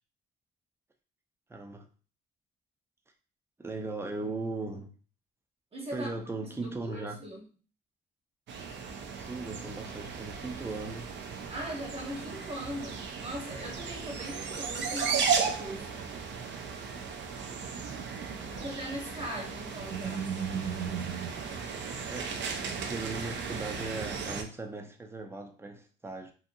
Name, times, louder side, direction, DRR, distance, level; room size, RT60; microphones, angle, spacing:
voice 1, 1.5-1.9 3.6-4.9 5.9-7.2 9.2-11.1 18.3-18.7 22.1-22.3 22.8-26.3, right 3 dB, 10° right, 0.5 m, -38 dB
voice 2, 5.7-6.1 6.4-7.5 11.5-16.1 18.5-20.3, equal, 30° right, 1.0 m, -40 dB
sound 1, 8.5-24.4, right 6 dB, 65° right, 0.5 m, -35 dB
2.7 x 2.4 x 2.6 m
cardioid pair, 90°, 20 cm